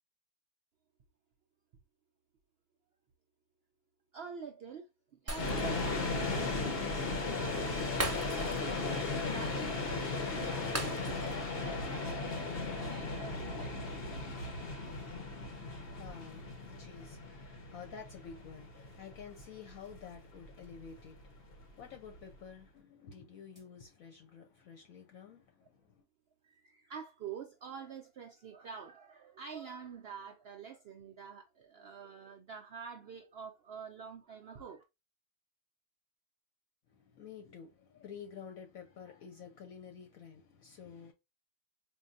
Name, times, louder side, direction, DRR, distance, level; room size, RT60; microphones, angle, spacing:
voice 1, 4.1-7.9 8.3-9.9 10.3-13.8 14.1-15.1 26.4-34.8, right 6 dB, 70° right, 0.5 m, -48 dB
Train Passing By (Krippen), 5.3-22.3, left 3 dB, 50° left, 0.8 m, -37 dB
Shatter, 5.3-6.0 6.3-6.5 8.0-8.8 9.1-9.2 10.7-11.5 11.8-12.0, right 1 dB, 20° right, 0.4 m, -39 dB
voice 2, 15.4-26.0 36.9-41.1, left 7 dB, 70° left, 1.1 m, -51 dB
4.5 x 2.6 x 2.4 m
omnidirectional pair, 1.6 m